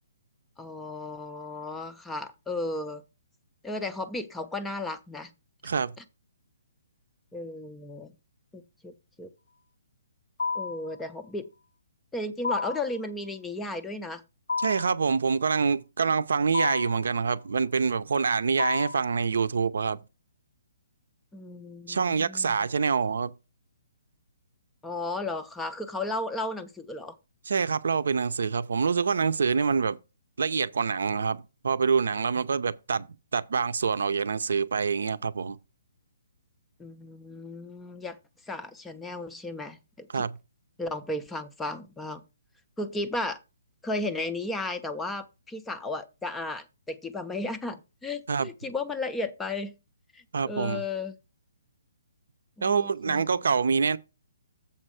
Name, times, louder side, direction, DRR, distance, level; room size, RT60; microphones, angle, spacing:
voice 1, 0.6-3.0 3.6-5.3 7.3-8.1 8.5-8.9 9.2-9.3 10.5-11.5 12.1-14.2 21.3-22.7 24.8-27.2 36.8-38.2 38.5-40.2 40.8-42.2 42.8-43.4 43.8-49.7 50.1-51.1 52.6-53.2, left 2 dB, 5° left, 0.4 m, -34 dB
voice 2, 5.6-5.9 14.6-20.0 21.9-23.3 27.5-30.0 30.4-33.1 33.3-35.6 40.1-40.3 48.3-48.5 50.3-50.8 52.6-54.0, right 5 dB, 70° right, 0.6 m, -26 dB
sound 1, 10.4-10.9 12.4-12.9 14.5-15.0 16.5-17.0 18.6-19.1, left 4 dB, 75° left, 0.3 m, -30 dB
7.3 x 4.4 x 6.3 m
hypercardioid pair, 175°, 0 cm